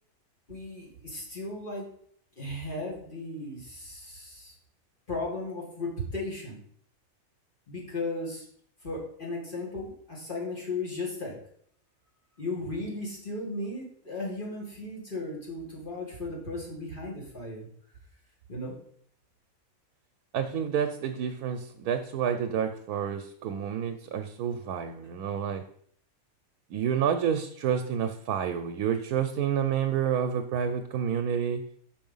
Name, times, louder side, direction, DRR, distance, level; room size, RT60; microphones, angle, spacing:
voice 1, 0.5-1.9 2.4-4.5 5.1-6.6 7.7-8.4 8.8-11.4 12.4-17.7 18.5-18.8, left 2 dB, 35° left, -4 dB, 2.4 m, -36 dB
voice 2, 20.3-25.6 26.7-31.6, right 8 dB, 90° right, 7 dB, 1.1 m, -29 dB
5.6 x 4.9 x 5.4 m, 0.63 s
omnidirectional pair, 1.6 m